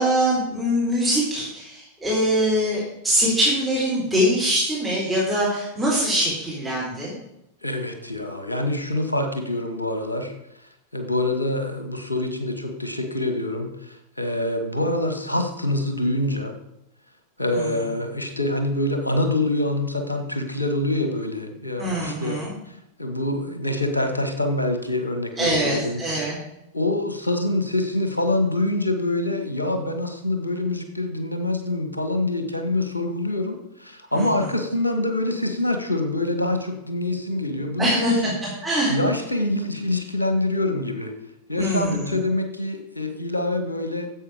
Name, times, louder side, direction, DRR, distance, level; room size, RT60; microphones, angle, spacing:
voice 1, 0.0-7.1 17.5-17.7 21.8-22.5 25.4-26.4 34.1-34.3 37.8-38.3 38.6-38.9 41.6-42.2, equal, 5° right, -7 dB, 4.0 m, -23 dB
voice 2, 7.6-10.3 10.9-16.6 17.4-22.4 22.7-26.0 26.7-38.3 38.9-41.1 41.5-44.1, left 2 dB, 85° left, 6 dB, 1.6 m, -25 dB
11.0 x 8.1 x 5.0 m, 0.83 s
figure-of-eight pair, 90°, 0 cm